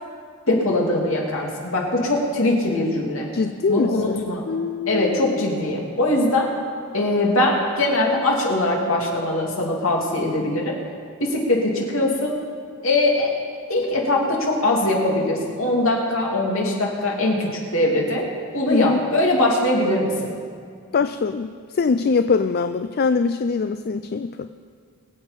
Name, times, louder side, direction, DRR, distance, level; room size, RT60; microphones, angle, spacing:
voice 1, 0.5-3.3 3.7-4.5 4.9-6.5 6.9-10.7 11.2-12.3 12.8-13.3 13.7-18.3 18.5-20.3, left 1 dB, 65° left, -2 dB, 2.8 m, -21 dB
voice 2, 3.3-5.6 18.7-19.1 20.9-24.5, left 4 dB, 45° left, 10 dB, 0.4 m, -23 dB
23.0 x 8.2 x 5.3 m, 2.2 s
head